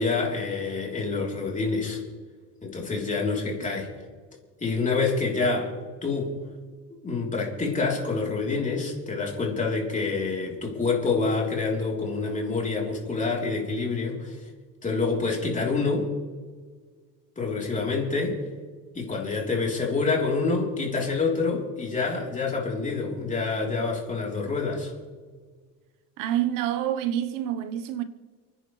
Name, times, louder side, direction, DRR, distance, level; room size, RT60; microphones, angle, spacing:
voice 1, 0.0-2.0 2.6-3.9 4.6-5.7 6.0-6.4 7.0-14.4 14.8-16.1 17.4-18.5 18.9-24.9, left 4 dB, 25° left, 3.7 m, -27 dB
voice 2, 26.2-28.0, right 11 dB, 85° right, 1.1 m, -27 dB
30.0 x 10.0 x 3.3 m
cardioid pair, 115°, 32 cm